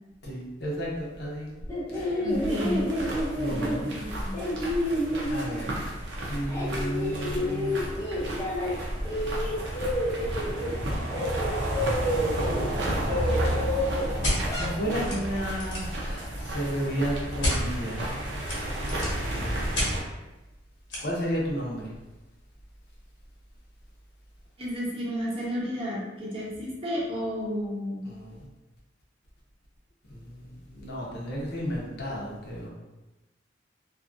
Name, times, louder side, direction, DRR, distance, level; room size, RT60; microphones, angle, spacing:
voice 1, 0.2-1.5 1.9-2.3 3.4-3.9 5.3-5.8 6.3-7.9 13.0-13.7 14.0-18.1 19.3-20.0 21.0-21.9 28.0-28.5 30.1-32.7, equal, 60° left, -4 dB, 0.7 m, -33 dB
sound 1, 1.6-6.0 6.3-8.8 9.0-15.0, left 1 dB, 15° left, 0.5 m, -30 dB
voice 2, 2.2-2.9 3.4-4.4 5.1-5.2 24.6-28.1, equal, 30° right, -6 dB, 0.7 m, -32 dB
sound 2, 2.3-20.0, right 1 dB, 75° right, 0.6 m, -32 dB
sound 3, 14.2-14.4 15.0-15.2 15.5-15.9 17.4-17.6 18.4-19.2 19.8-19.9 20.9-21.0, left 1 dB, 90° left, 1.1 m, -28 dB
2.7 x 2.4 x 2.5 m, 1.0 s
head